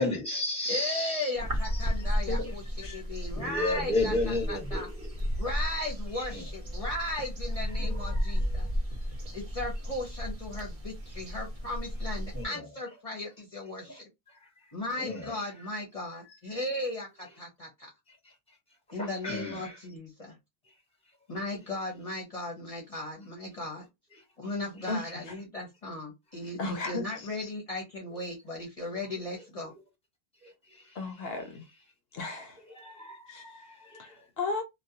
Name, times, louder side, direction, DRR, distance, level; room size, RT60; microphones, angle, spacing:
voice 1, 0.0-1.3 1.7-1.8 2.9-3.0 3.4-5.1 6.3-6.4 7.8-8.2 12.3-12.7 13.9-14.0 15.0-15.4 19.0-19.8 30.4-30.8 32.7-34.1, left 2 dB, 5° left, 1.0 m, -33 dB
voice 2, 0.7-4.9 5.4-8.7 9.3-14.1 14.7-17.9 18.9-20.4 21.3-23.9 24.4-29.7, left 1 dB, 40° left, 0.7 m, -36 dB
sound 1, 1.4-12.5, equal, 40° right, 0.7 m, -33 dB
voice 3, 24.9-25.3 26.6-27.5 30.9-31.7 32.1-32.6 33.3-33.4 34.0-34.6, left 3 dB, 70° left, 0.8 m, -35 dB
2.3 x 2.2 x 2.7 m
omnidirectional pair, 1.1 m